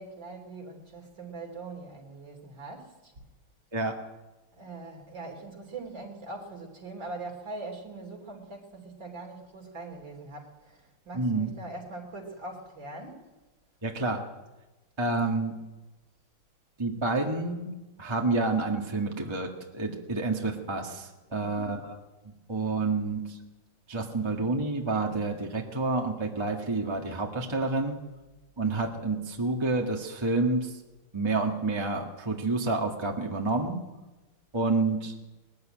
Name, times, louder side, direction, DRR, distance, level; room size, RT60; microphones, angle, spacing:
voice 1, 0.0-3.1 4.6-13.3 21.3-21.8, right 3 dB, 60° right, 0 dB, 3.9 m, -42 dB
voice 2, 11.1-11.5 13.8-14.2 15.0-15.5 16.8-17.7 18.0-19.5 19.7-21.8 22.5-23.4 23.9-28.0 28.6-30.7 31.1-33.8 34.5-35.1, right 3 dB, 15° right, 1 dB, 1.6 m, -28 dB
20.5 x 14.0 x 9.1 m, 1.1 s
omnidirectional pair, 2.3 m